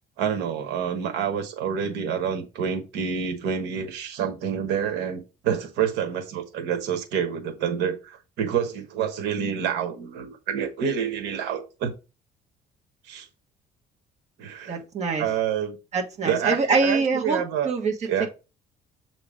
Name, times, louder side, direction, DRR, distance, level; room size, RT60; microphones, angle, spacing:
voice 1, 0.2-11.9 13.0-13.3 14.4-14.8 15.2-15.8 16.2-17.7 18.1-18.3, right 8 dB, 90° right, 1.2 m, -28 dB
voice 2, 14.7-15.3 15.9-18.3, right 4 dB, 40° right, 1.6 m, -25 dB
7.5 x 3.0 x 4.9 m
cardioid pair, 110°, 17 cm